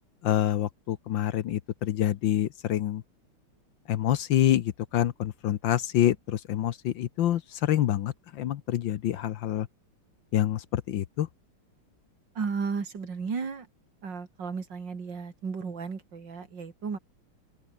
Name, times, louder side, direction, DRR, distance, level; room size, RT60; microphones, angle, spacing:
voice 1, 0.2-3.0 3.9-9.7 10.3-11.3, left 12 dB, 70° left, 1.5 m, -27 dB
voice 2, 12.4-13.7 14.0-17.0, right 5 dB, 55° right, 3.4 m, -34 dB
open air
omnidirectional pair, 2.4 m